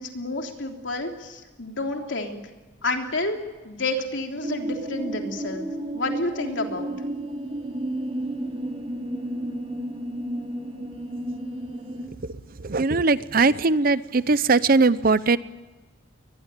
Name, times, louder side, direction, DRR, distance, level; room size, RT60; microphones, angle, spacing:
voice 1, 0.0-2.4 2.8-3.4 3.6-5.7 5.9-6.9, left 2 dB, 85° left, 3 dB, 3.3 m, -29 dB
sound 1, 4.4-12.1, right 1 dB, 30° right, 3.2 m, -32 dB
voice 2, 12.6-15.4, right 3 dB, 50° right, 16 dB, 0.8 m, -20 dB
22.5 x 20.5 x 9.2 m, 1.2 s
head